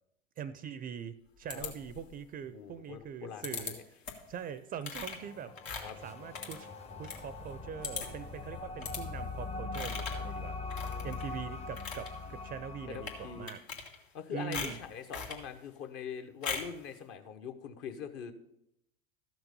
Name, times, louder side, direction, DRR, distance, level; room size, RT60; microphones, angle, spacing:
voice 1, 0.4-3.8 4.3-5.5 6.0-10.6 11.0-13.6 14.3-14.8, right 8 dB, 30° right, 14 dB, 0.5 m, -42 dB
sound 1, 1.5-2.2 3.4-3.7 4.0-4.3 4.8-7.2 7.5-7.6 7.8-8.3 8.8-9.0 9.7-10.3 10.7-11.3 11.6-12.1 12.9-13.2 13.5-14.2 14.5-15.4 16.4-16.8, left 5 dB, 80° left, 1.8 m, -40 dB
voice 2, 2.5-3.8 5.8-6.0 10.8-11.1 11.4-11.5 12.9-13.5 14.1-18.3, left 7 dB, 50° left, 7 dB, 1.2 m, -43 dB
sound 2, 5.2-13.5, left 3 dB, 20° left, 0.8 m, -42 dB
13.0 x 6.1 x 5.3 m, 0.80 s
hypercardioid pair, 90°, 30 cm